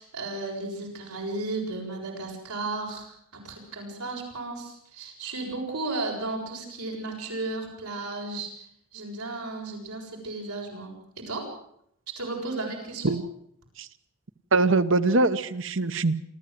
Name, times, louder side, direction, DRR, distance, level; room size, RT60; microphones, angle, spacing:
voice 1, 0.0-11.5 12.2-13.1, right 2 dB, 90° right, 0 dB, 7.4 m, -34 dB
voice 2, 14.5-16.2, right 3 dB, 55° right, 13 dB, 1.0 m, -22 dB
27.5 x 14.5 x 7.8 m, 0.71 s
head